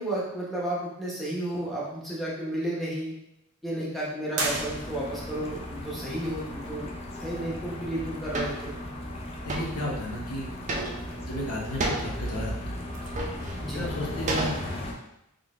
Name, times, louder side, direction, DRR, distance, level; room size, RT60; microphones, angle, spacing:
voice 1, 0.0-3.1 3.6-6.9 7.2-8.7 13.6-13.8, right 1 dB, ahead, -6 dB, 0.9 m, -32 dB
sound 1, 4.3-5.4, right 3 dB, 70° right, 0.7 m, -32 dB
sound 2, 4.4-14.9, left 1 dB, 25° left, 0.5 m, -37 dB
sound 3, 8.3-8.6 9.5-9.8 10.7-11.2 11.8-12.1 12.9-13.5 14.3-14.9, right 2 dB, 35° right, 0.4 m, -30 dB
voice 2, 9.4-10.5 11.2-12.8 13.7-14.6, left 1 dB, 80° left, -2 dB, 0.9 m, -33 dB
3.8 x 3.3 x 2.4 m, 0.83 s
head